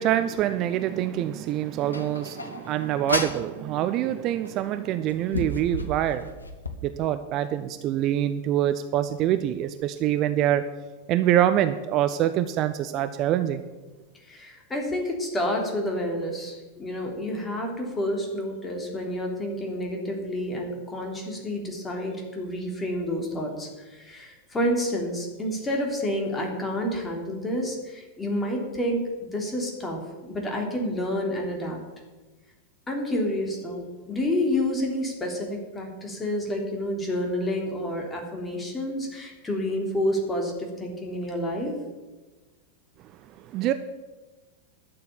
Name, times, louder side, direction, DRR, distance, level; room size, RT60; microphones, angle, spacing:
voice 1, 0.0-6.3 6.8-10.6 11.1-13.6 43.5-43.7, right 12 dB, 35° right, 11 dB, 0.6 m, -25 dB
sound 1, 1.9-3.5 4.4-4.5 5.1-6.8, left 1 dB, 80° left, 1.1 m, -32 dB
voice 2, 14.3-29.0 29.3-31.8 32.9-41.7, left 1 dB, 15° left, 1 dB, 3.2 m, -29 dB
11.5 x 7.0 x 9.2 m, 1.2 s
figure-of-eight pair, 90°, 0 cm